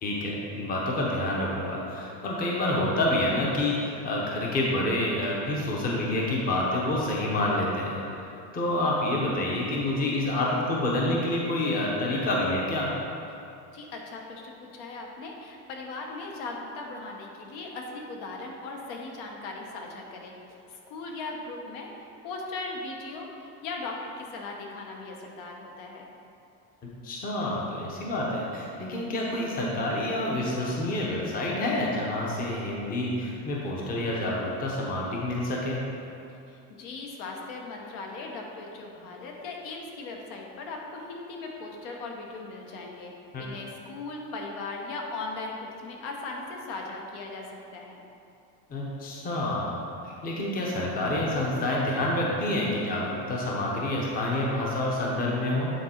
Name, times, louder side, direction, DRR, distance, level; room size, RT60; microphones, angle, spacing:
voice 1, 0.0-12.9 27.0-35.8 43.3-43.5 48.7-49.8 50.0-55.7, left 1 dB, 20° left, -3 dB, 0.8 m, -28 dB
voice 2, 13.7-20.3 20.9-21.9 22.2-26.1 36.5-48.0, left 3 dB, 70° left, 0 dB, 1.2 m, -38 dB
9.2 x 3.8 x 4.3 m, 2.6 s
cardioid pair, 165°, 45 cm